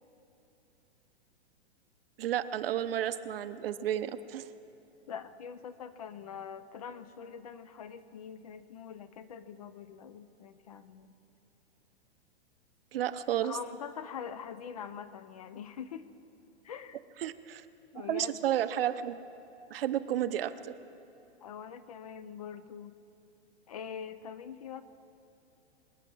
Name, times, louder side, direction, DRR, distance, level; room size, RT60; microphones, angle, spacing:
voice 1, 2.2-4.5 12.9-13.6 17.2-17.6 18.0-19.2 19.7-20.5, right 11 dB, 55° right, 13 dB, 0.7 m, -32 dB
voice 2, 5.1-11.1 13.4-16.1 16.6-17.0 17.9-18.4 21.4-23.0 23.7-24.8, left 7 dB, 35° left, 13 dB, 0.5 m, -43 dB
25.0 x 9.6 x 6.1 m, 2.9 s
hypercardioid pair, 165°, 34 cm